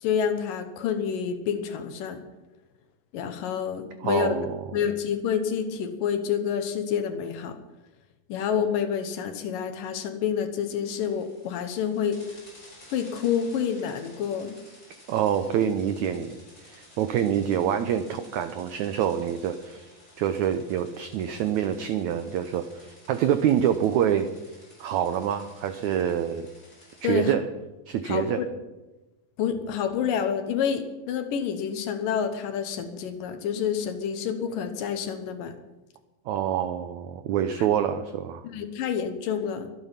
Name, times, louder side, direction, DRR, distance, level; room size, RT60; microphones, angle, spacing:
voice 1, 0.0-2.2 3.1-4.4 4.7-7.6 8.3-12.2 12.9-14.6 27.0-27.3 28.0-28.5 29.4-35.5 38.4-39.7, left 8 dB, 70° left, 8 dB, 2.7 m, -28 dB
voice 2, 4.0-4.6 15.1-19.9 20.2-24.3 24.8-26.5 27.0-27.4 27.9-28.4 36.3-38.4, right 9 dB, 85° right, 9 dB, 1.6 m, -26 dB
sound 1, 10.8-27.1, left 1 dB, 15° left, 6.3 m, -53 dB
23.5 x 9.1 x 5.8 m, 1.1 s
omnidirectional pair, 4.3 m